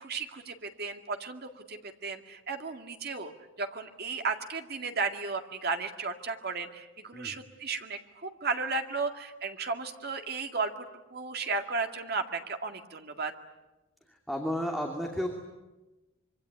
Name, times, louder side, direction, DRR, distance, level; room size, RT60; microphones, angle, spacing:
voice 1, 0.0-3.3 3.6-13.3, right 4 dB, 50° right, 5 dB, 2.2 m, -34 dB
voice 2, 14.3-15.3, equal, ahead, 0 dB, 2.6 m, -32 dB
25.5 x 24.0 x 9.6 m, 1.1 s
head